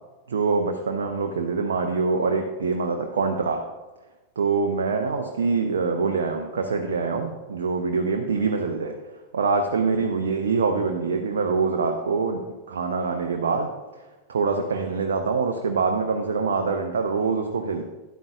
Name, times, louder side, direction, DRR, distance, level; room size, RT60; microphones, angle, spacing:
voice 1, 0.3-3.6 4.4-8.9 9.3-12.4 12.7-13.7 14.3-17.8, right 4 dB, 65° right, 4 dB, 0.7 m, -24 dB
12.5 x 10.0 x 2.4 m, 1.2 s
figure-of-eight pair, 90°, 0 cm